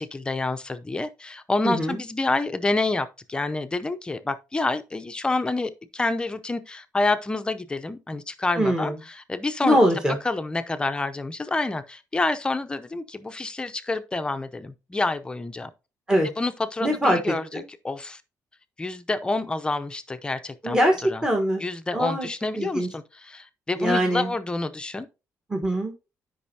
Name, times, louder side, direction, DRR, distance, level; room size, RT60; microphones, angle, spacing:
voice 1, 0.0-9.8 10.2-15.7 16.4-18.2 18.8-20.8 21.0-21.2 21.6-25.1, left 2 dB, 15° left, 0.7 m, -28 dB
voice 2, 1.6-2.0 8.6-8.9 9.6-10.2 16.1-16.3 16.8-17.6 20.6-21.7 21.9-22.3 22.6-22.9 23.8-24.3 25.5-25.9, equal, 10° right, 1.3 m, -22 dB
12.0 x 5.4 x 2.8 m
cardioid pair, 155°, 6 cm